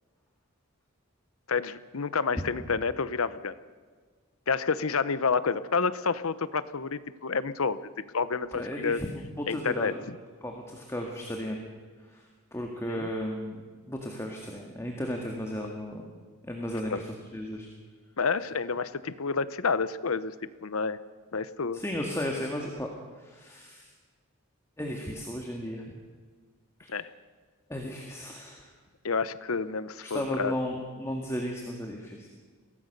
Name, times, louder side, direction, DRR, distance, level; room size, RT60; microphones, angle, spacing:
voice 1, 1.5-3.6 4.5-9.0 9.5-10.2 12.9-13.1 15.6-15.7 16.9-17.0 18.2-20.3 20.6-21.0 21.3-21.8 26.9-27.1 29.0-30.5, left 5 dB, 80° left, 16 dB, 0.9 m, -29 dB
voice 2, 8.5-9.1 9.4-10.0 10.4-11.6 12.0-13.6 13.9-16.2 16.4-17.0 17.3-17.7 21.7-22.9 23.2-23.9 24.8-25.8 26.8-26.9 27.7-28.7 30.0-32.3, equal, 15° left, 1 dB, 1.9 m, -35 dB
23.0 x 17.5 x 6.7 m, 1.5 s
head